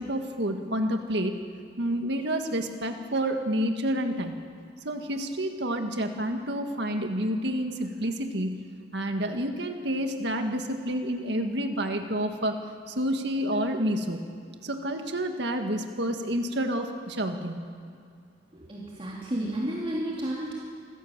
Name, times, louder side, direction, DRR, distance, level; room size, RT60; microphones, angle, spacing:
voice 1, 0.0-1.4 1.8-4.4 4.8-8.6 8.9-12.5 12.9-14.2 14.6-17.6, equal, 65° right, 5 dB, 2.0 m, -29 dB
voice 2, 18.5-20.5, right 1 dB, 30° right, -5 dB, 3.2 m, -32 dB
27.0 x 16.0 x 7.5 m, 2.3 s
head